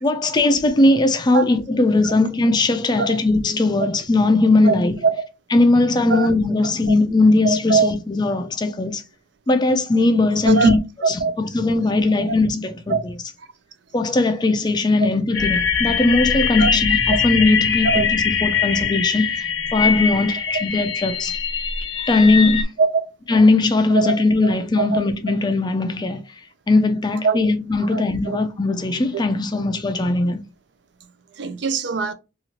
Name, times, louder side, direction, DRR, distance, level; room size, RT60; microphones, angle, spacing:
voice 1, 0.0-5.0 5.5-9.0 9.5-10.8 11.1-13.1 13.9-21.3 22.1-22.7 23.3-26.2 26.7-30.4, left 2 dB, 20° left, 0.3 m, -19 dB
voice 2, 7.4-7.9 10.4-10.8 11.0-11.3 12.9-13.0 16.6-16.7 17.8-18.0 22.8-22.9 23.9-25.0 27.2-27.4 27.9-28.4 31.4-32.1, right 4 dB, 60° right, 0.5 m, -21 dB
sound 1, 15.3-22.6, left 6 dB, 85° left, 0.7 m, -22 dB
2.9 x 2.4 x 2.7 m
head